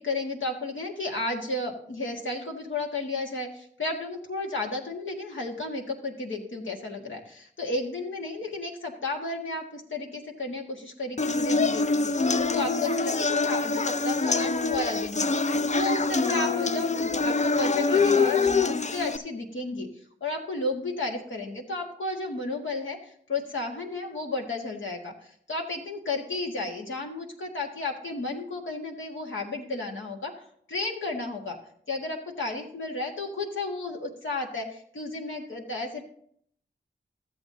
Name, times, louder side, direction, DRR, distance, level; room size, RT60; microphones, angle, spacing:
voice 1, 0.0-19.9 20.2-31.6 31.9-36.0, left 2 dB, 75° left, 0 dB, 1.7 m, -33 dB
sound 1, 11.2-19.2, left 4 dB, 35° left, 0.5 m, -25 dB
13.5 x 8.0 x 2.8 m, 0.64 s
cardioid pair, 40°, 20 cm